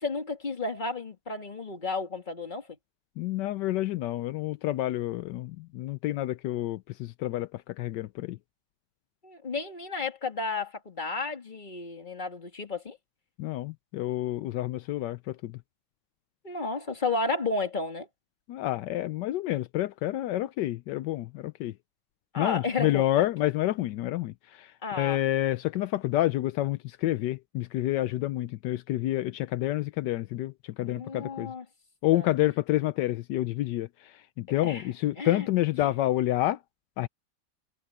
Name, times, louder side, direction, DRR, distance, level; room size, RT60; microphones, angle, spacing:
voice 1, 0.0-2.8 9.2-13.0 16.4-18.1 22.3-23.0 24.8-25.2 30.8-31.6 32.1-32.3 34.6-34.9 35.2-35.5 35.8-35.9, left 3 dB, 25° left, 2.3 m, -32 dB
voice 2, 3.2-8.4 13.4-15.6 18.5-21.7 22.4-31.5 32.0-36.6 37.0-37.1, left 15 dB, 80° left, 1.2 m, -29 dB
omnidirectional pair, 1.9 m